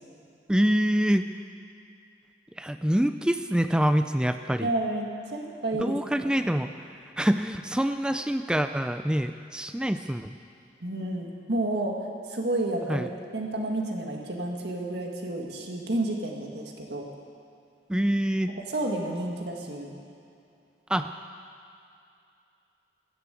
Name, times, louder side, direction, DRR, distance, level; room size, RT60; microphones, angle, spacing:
voice 1, 0.5-1.3 2.6-4.7 5.8-6.7 7.2-10.4 12.9-13.1 17.9-18.5 20.9-21.2, equal, 5° right, 9 dB, 0.3 m, -25 dB
voice 2, 4.6-6.6 10.8-17.1 18.7-20.0, right 1 dB, 70° right, 0 dB, 1.9 m, -31 dB
14.5 x 11.0 x 8.4 m, 2.6 s
head